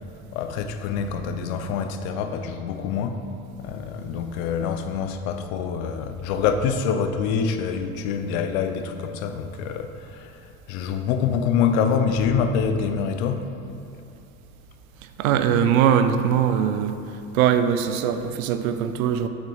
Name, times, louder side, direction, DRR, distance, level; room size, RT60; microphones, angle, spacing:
voice 1, 0.3-3.2 3.6-10.4 10.7-13.5, left 6 dB, 80° left, 8 dB, 0.7 m, -25 dB
voice 2, 15.2-17.0 17.3-19.3, right 8 dB, 90° right, 9 dB, 0.6 m, -21 dB
6.5 x 4.4 x 5.4 m, 2.7 s
supercardioid pair, 90°, 41 cm